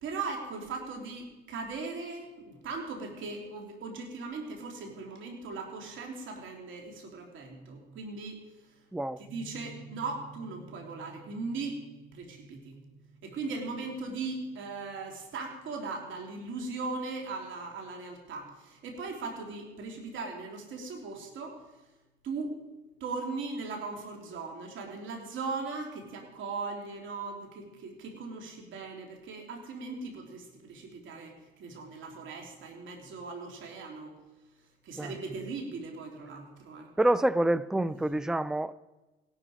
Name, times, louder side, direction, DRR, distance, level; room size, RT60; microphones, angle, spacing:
voice 1, 0.0-8.4 9.2-11.8 12.1-12.7 13.2-21.6 22.2-22.5 23.0-34.2 34.8-36.9 38.0-38.1, right 4 dB, 75° right, 3.2 m, -39 dB
sound 1, 9.2-18.0, right 3 dB, 20° right, 3.0 m, -54 dB
voice 2, 37.0-38.7, right 1 dB, 5° right, 0.4 m, -27 dB
17.0 x 12.0 x 5.0 m
cardioid pair, 90°, 20 cm